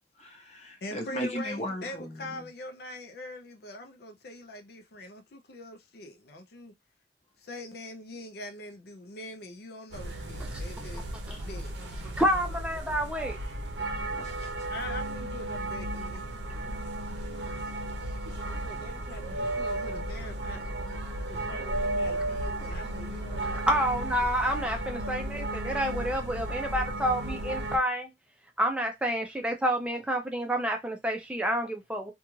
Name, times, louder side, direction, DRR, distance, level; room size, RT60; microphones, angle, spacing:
voice 1, 0.2-2.2 14.1-14.5, equal, 35° left, 0.8 m, -36 dB
voice 2, 0.8-6.7 7.4-11.0 11.4-11.7 14.6-16.2 18.4-23.7, left 1 dB, 60° left, 0.5 m, -43 dB
sound 1, 9.9-27.8, right 1 dB, 75° right, 0.6 m, -34 dB
voice 3, 12.2-13.4 23.7-28.1 28.6-32.1, equal, 5° right, 0.4 m, -29 dB
2.4 x 2.2 x 3.0 m
head